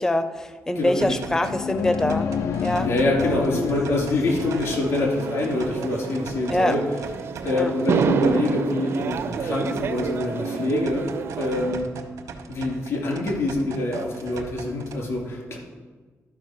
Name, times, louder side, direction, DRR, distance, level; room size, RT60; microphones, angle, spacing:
voice 1, 0.0-2.3 2.5-2.9 3.2-3.7 6.5-6.8 7.5-7.7, left 1 dB, 10° left, 10 dB, 0.5 m, -24 dB
voice 2, 0.7-1.2 2.8-6.8 7.4-11.9 12.5-15.6, left 2 dB, 60° left, 0 dB, 2.7 m, -25 dB
sound 1, 1.0-15.0, right 5 dB, 85° right, 1.0 m, -40 dB
sound 2, 1.2-5.8, left 7 dB, 80° left, 0.4 m, -29 dB
sound 3, 4.3-11.8, right 6 dB, 55° right, 0.5 m, -29 dB
12.5 x 5.0 x 5.8 m, 1.4 s
wide cardioid pair, 170°, 5 cm